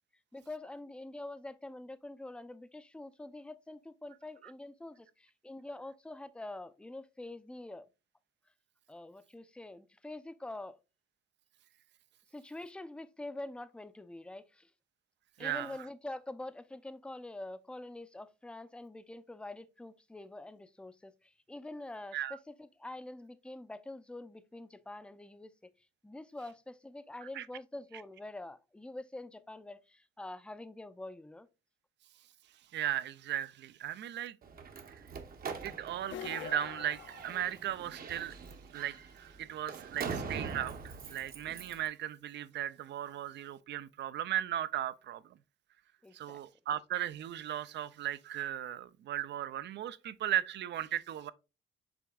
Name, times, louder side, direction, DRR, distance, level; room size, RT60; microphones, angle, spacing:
voice 1, 0.3-7.9 8.9-10.8 12.3-14.7 15.4-25.5 26.0-31.5 40.0-40.2 46.0-46.4, left 2 dB, 5° left, 0.5 m, -45 dB
voice 2, 15.4-15.7 22.1-22.4 27.3-27.5 32.7-34.4 34.9-35.0 35.6-38.4 38.7-45.2 46.1-51.3, right 11 dB, 65° right, 0.5 m, -37 dB
Slam, 34.4-41.9, right 5 dB, 50° right, 0.9 m, -43 dB
sound 1, 36.0-38.0, left 8 dB, 70° left, 0.7 m, -45 dB
5.9 x 3.5 x 2.3 m
cardioid pair, 90°, 20 cm